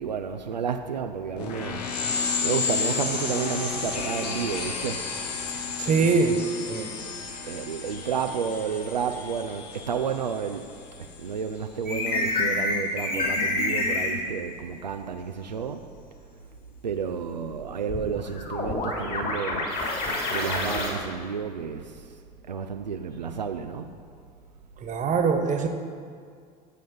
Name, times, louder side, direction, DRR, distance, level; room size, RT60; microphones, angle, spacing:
voice 1, 0.0-1.8 2.4-5.0 6.0-6.4 6.7-6.8 7.4-10.6 11.2-15.9 16.8-19.7 20.3-22.1 22.5-23.9, right 6 dB, 90° right, 5 dB, 0.5 m, -31 dB
sound 1, 1.4-11.5, left 5 dB, 70° left, 1.4 m, -32 dB
voice 2, 5.8-6.8 24.8-25.7, right 4 dB, 35° right, 6 dB, 1.4 m, -23 dB
sound 2, 11.9-14.2 17.9-20.9, left 2 dB, 45° left, 3.3 m, -27 dB
13.5 x 7.6 x 5.5 m, 2.2 s
figure-of-eight pair, 70°, 21 cm